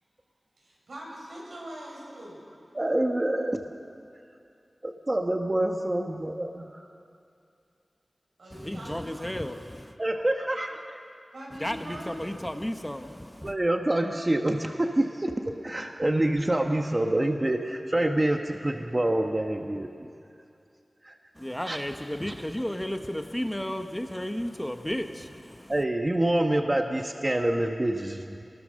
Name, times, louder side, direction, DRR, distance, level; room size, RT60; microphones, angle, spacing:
voice 1, 0.6-2.5 8.4-9.4 11.3-12.1 13.4-13.5, right 1 dB, 90° right, -3 dB, 6.4 m, -42 dB
voice 2, 2.7-3.7 4.8-6.7 10.0-11.0 13.4-15.3 15.6-19.9 21.0-21.1 21.7-21.8 25.7-28.4, right 1 dB, 30° right, 4 dB, 1.2 m, -26 dB
voice 3, 8.5-9.9 11.6-13.5 21.4-25.7, equal, 10° left, 6 dB, 1.2 m, -33 dB
28.0 x 20.0 x 6.5 m, 2.5 s
wide cardioid pair, 75°, 0 cm